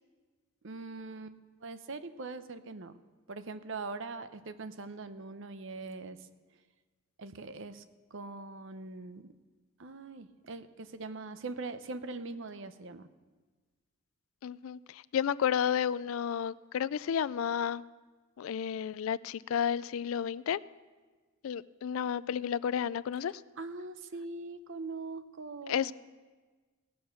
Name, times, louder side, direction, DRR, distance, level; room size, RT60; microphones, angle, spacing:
voice 1, 0.6-3.0 3.3-6.2 7.2-7.8 8.1-9.3 9.8-13.1 23.3-25.9, right 3 dB, 60° right, 11 dB, 0.7 m, -42 dB
voice 2, 14.4-17.8 18.4-20.6 21.4-23.3 25.7-25.9, left 8 dB, 70° left, 18 dB, 0.3 m, -32 dB
17.5 x 6.9 x 6.5 m, 1.4 s
head